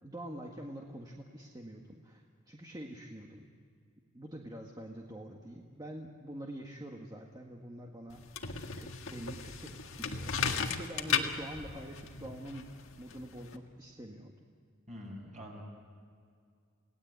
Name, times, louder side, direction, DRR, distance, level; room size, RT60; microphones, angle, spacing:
voice 1, 0.0-3.5 4.1-8.4 8.7-10.3 10.7-14.3, right 1 dB, 20° right, 1 dB, 1.7 m, -45 dB
sound 1, 8.1-13.6, left 6 dB, 70° left, 1.8 m, -36 dB
voice 2, 14.9-15.6, equal, 35° right, 0 dB, 6.9 m, -45 dB
29.0 x 18.5 x 8.3 m, 2.2 s
head